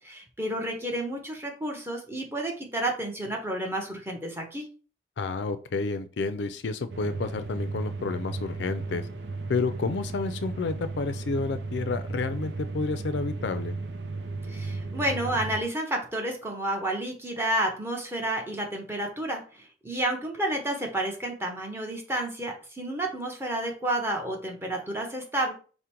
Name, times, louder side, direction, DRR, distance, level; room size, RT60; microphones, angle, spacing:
voice 1, 0.0-4.7 14.5-25.5, right 1 dB, 15° right, 1 dB, 0.9 m, -30 dB
voice 2, 5.2-9.0 9.5-13.8, left 4 dB, 80° left, 11 dB, 0.4 m, -30 dB
sound 1, 6.9-15.6, right 3 dB, 75° right, 0.5 m, -35 dB
5.0 x 2.1 x 4.4 m, 0.38 s
head